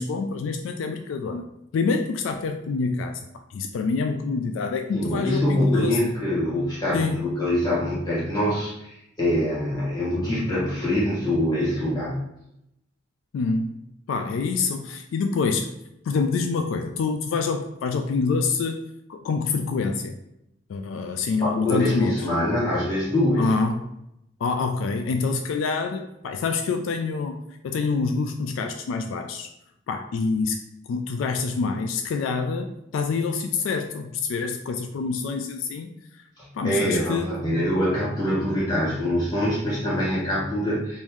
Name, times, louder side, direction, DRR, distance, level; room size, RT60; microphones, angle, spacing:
voice 1, 0.0-1.5 1.7-3.2 3.5-6.0 6.9-7.4 13.3-13.8 14.1-15.7 16.0-18.8 19.1-20.2 20.7-22.2 23.4-23.8 24.4-27.4 27.6-29.5 29.9-30.6 30.9-35.9 36.5-37.3, left 4 dB, 75° left, 6 dB, 0.3 m, -26 dB
voice 2, 4.9-12.2 21.4-23.5 36.4-41.0, left 1 dB, 20° left, -8 dB, 1.5 m, -24 dB
3.6 x 2.6 x 3.0 m, 0.83 s
head